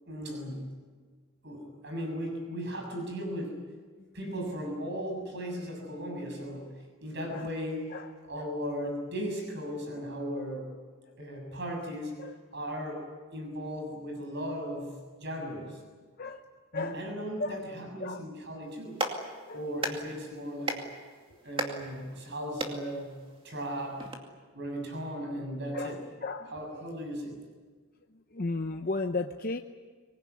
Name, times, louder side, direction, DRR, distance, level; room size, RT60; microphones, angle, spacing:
voice 1, 0.1-0.7 1.4-3.6 4.1-6.7 7.0-7.8 8.3-10.7 11.2-12.2 12.5-13.0 13.3-15.8 16.7-19.0 19.5-20.8 21.4-23.2 23.4-24.1 24.5-26.0 26.5-27.4, equal, 50° right, 3 dB, 7.0 m, -36 dB
Clapping, 18.7-24.2, right 2 dB, 25° right, 2.4 m, -38 dB
voice 2, 28.3-29.6, left 3 dB, 40° left, 5 dB, 0.8 m, -34 dB
25.0 x 20.0 x 9.5 m, 1.5 s
head